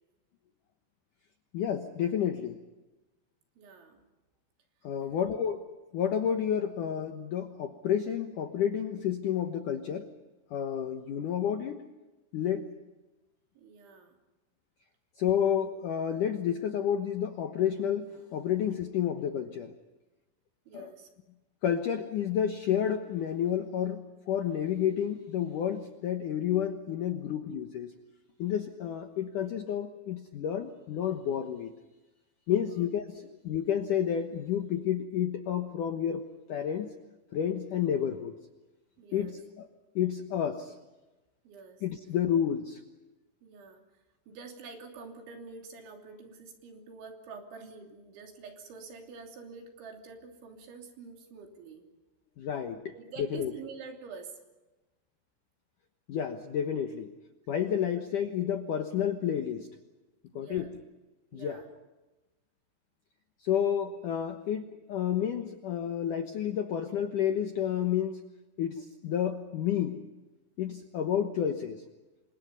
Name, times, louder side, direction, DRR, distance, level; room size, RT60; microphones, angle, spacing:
voice 1, 1.5-2.6 4.8-5.6 5.9-10.1 10.5-11.8 12.3-12.8 15.2-19.7 20.7-20.9 21.6-27.9 28.4-31.7 32.5-36.2 36.5-36.9 37.3-38.3 39.1-39.4 40.0-40.8 41.8-42.8 52.4-52.9 53.3-53.5 56.1-57.1 57.5-59.7 60.4-60.7 61.3-61.6 63.4-68.2 68.6-70.0 70.6-71.8, left 9 dB, 90° left, 6 dB, 1.8 m, -30 dB
voice 2, 3.6-4.0 5.0-5.4 13.6-14.2 20.7-21.1 32.7-32.9 39.0-39.4 41.5-41.8 43.4-51.9 52.9-54.4 60.3-60.7 61.3-61.7, right 4 dB, 70° right, 3 dB, 5.3 m, -47 dB
29.5 x 25.5 x 5.5 m, 1.1 s
omnidirectional pair, 5.7 m